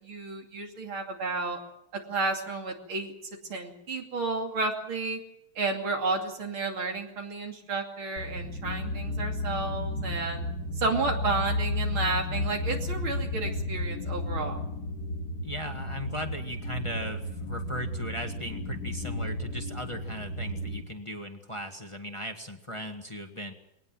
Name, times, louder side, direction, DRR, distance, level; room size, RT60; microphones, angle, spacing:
voice 1, 0.0-1.6 1.9-3.1 3.5-5.2 5.6-10.4 10.8-14.6, right 3 dB, 80° right, 2 dB, 3.5 m, -31 dB
sound 1, 8.2-20.8, left 2 dB, 45° left, 2.4 m, -33 dB
voice 2, 15.4-23.5, equal, 15° left, 4 dB, 1.5 m, -38 dB
22.0 x 19.0 x 7.6 m, 0.82 s
omnidirectional pair, 2.3 m